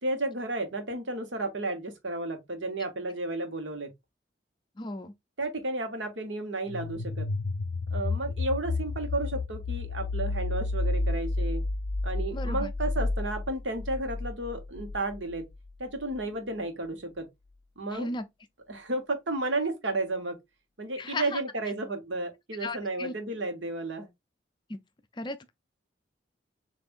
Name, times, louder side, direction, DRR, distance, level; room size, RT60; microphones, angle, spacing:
voice 1, 0.0-3.9 5.4-7.3 7.9-11.6 12.0-15.5 15.8-17.3 17.8-18.1 18.7-20.4 20.8-24.1, right 2 dB, 80° right, 1.2 m, -32 dB
voice 2, 4.8-5.1 12.3-12.7 17.9-18.2 21.0-21.4 22.6-23.1 24.7-24.8 25.2-25.5, left 2 dB, 25° left, 0.4 m, -35 dB
sound 1, 6.7-15.4, left 2 dB, 85° left, 0.4 m, -31 dB
6.9 x 2.6 x 2.5 m
head